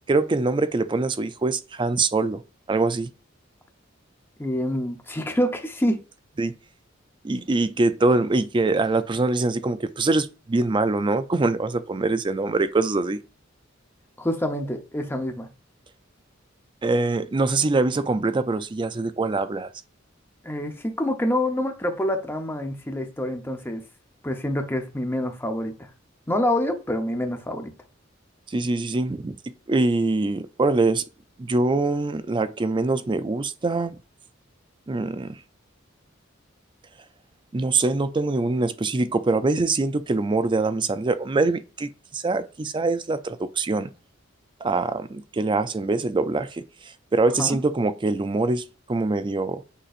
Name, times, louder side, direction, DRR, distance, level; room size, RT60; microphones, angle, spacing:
voice 1, 0.1-2.4 2.7-3.1 6.4-6.5 7.2-13.2 16.8-19.7 28.5-29.3 29.7-31.0 31.4-34.0 34.9-35.4 37.5-43.9 44.6-46.6 47.1-49.6, right 3 dB, 25° right, 0.4 m, -23 dB
voice 2, 4.4-6.0 14.2-15.5 20.4-23.8 24.2-25.9 26.3-27.7 47.4-47.6, left 1 dB, 10° left, 0.7 m, -26 dB
6.6 x 2.9 x 2.5 m
head